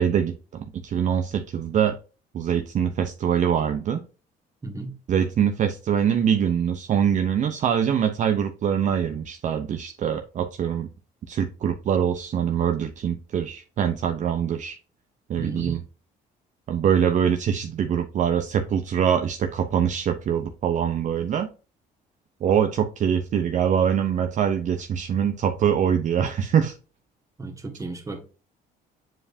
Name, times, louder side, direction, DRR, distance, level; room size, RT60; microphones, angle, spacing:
voice 1, 0.0-2.0 2.3-4.0 5.1-10.9 11.3-14.8 15.3-15.8 16.7-21.5 22.4-26.7, right 8 dB, 45° right, 0.6 m, -23 dB
voice 2, 4.6-4.9 15.4-15.8 27.4-28.3, right 3 dB, 20° right, 1.6 m, -34 dB
7.7 x 4.9 x 2.7 m
cardioid pair, 110°, 17 cm